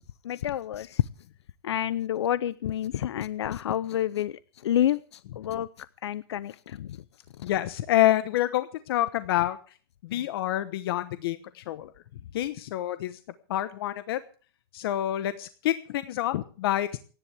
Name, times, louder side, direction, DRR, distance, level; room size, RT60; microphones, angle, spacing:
voice 1, 0.2-1.1 1.6-7.0 7.4-7.5, left 11 dB, 90° left, 17 dB, 0.6 m, -29 dB
voice 2, 7.4-9.6 10.0-13.2 13.5-14.2 14.7-17.0, left 14 dB, 65° left, 12 dB, 1.1 m, -27 dB
28.0 x 10.5 x 3.5 m, 0.40 s
supercardioid pair, 145°, 14 cm